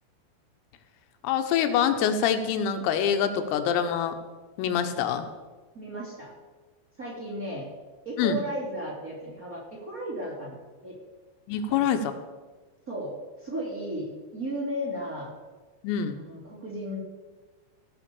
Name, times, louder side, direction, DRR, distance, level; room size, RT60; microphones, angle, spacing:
voice 1, 1.2-4.2 4.6-5.3 8.2-8.4 11.5-12.1 15.8-16.2, left 8 dB, 85° left, 8 dB, 3.7 m, -25 dB
voice 2, 5.7-6.3 7.0-7.7 8.0-11.0 11.7-11.8 12.9-15.3 16.1-17.0, equal, 20° right, -6 dB, 2.5 m, -35 dB
17.0 x 6.3 x 7.0 m, 1.3 s
omnidirectional pair, 5.9 m